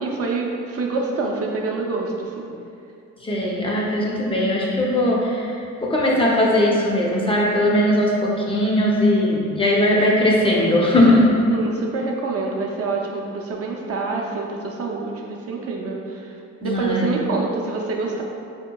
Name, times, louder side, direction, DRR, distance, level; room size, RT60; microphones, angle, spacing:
voice 1, 0.0-2.5 11.5-16.3 16.6-18.2, right 3 dB, 50° right, -1 dB, 0.5 m, -26 dB
voice 2, 3.2-5.5 5.8-11.3 16.6-17.1, left 1 dB, 20° left, -4 dB, 0.5 m, -19 dB
3.7 x 2.8 x 2.2 m, 2.5 s
cardioid pair, 90°, 30 cm